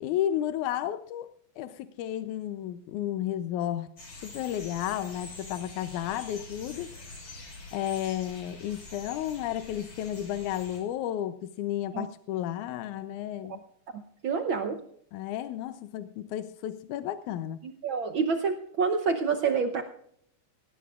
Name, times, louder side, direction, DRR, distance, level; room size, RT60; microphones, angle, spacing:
voice 1, 0.0-1.3 1.6-3.9 4.2-6.9 7.7-13.6 15.1-17.6, left 11 dB, 90° left, 11 dB, 2.1 m, -32 dB
sound 1, 4.0-10.8, left 2 dB, 50° left, 5.7 m, -45 dB
voice 2, 13.9-14.8 17.6-19.8, right 5 dB, 85° right, 7 dB, 1.1 m, -28 dB
18.5 x 17.5 x 2.4 m, 0.67 s
omnidirectional pair, 3.4 m